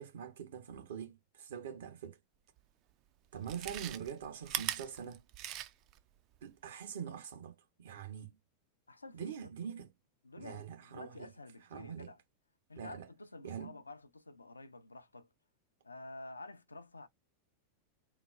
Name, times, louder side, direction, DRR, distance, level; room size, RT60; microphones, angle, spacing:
voice 1, 0.0-2.2 3.3-5.2 6.4-8.4 9.1-9.9 10.4-11.3 11.7-12.1 12.8-13.1 13.4-13.8, right 8 dB, 60° right, 0.7 m, -44 dB
Chewing mastication, 2.6-2.7 3.3-6.0 6.3-6.4, right 12 dB, 40° right, 0.3 m, -40 dB
voice 2, 8.9-9.4 10.2-12.2 12.7-15.3 15.8-17.1, left 2 dB, 80° left, 0.4 m, -50 dB
3.9 x 2.0 x 2.3 m
figure-of-eight pair, 90°, 0 cm